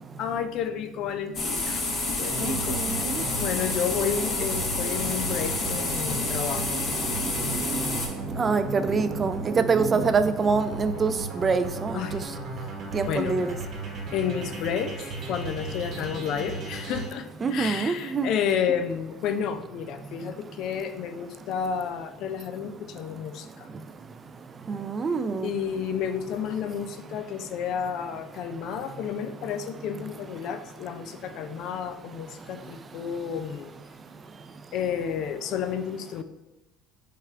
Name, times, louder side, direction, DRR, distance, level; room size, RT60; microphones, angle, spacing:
voice 1, 0.2-1.8 2.2-6.8 11.9-12.2 13.1-13.4 14.1-14.9 15.3-23.7 25.4-33.7 34.7-36.2, left 8 dB, 55° left, 8 dB, 0.4 m, -31 dB
sound 1, 1.3-8.1, left 3 dB, 40° left, 1.1 m, -29 dB
sound 2, 2.3-17.1, right 3 dB, 45° right, 1.0 m, -36 dB
voice 2, 2.4-3.2 7.4-8.0 8.3-12.2 12.9-13.6 17.4-18.3 24.7-25.5, right 4 dB, 25° right, 10 dB, 0.3 m, -26 dB
5.7 x 2.4 x 3.3 m, 1.0 s
supercardioid pair, 115°, 0 cm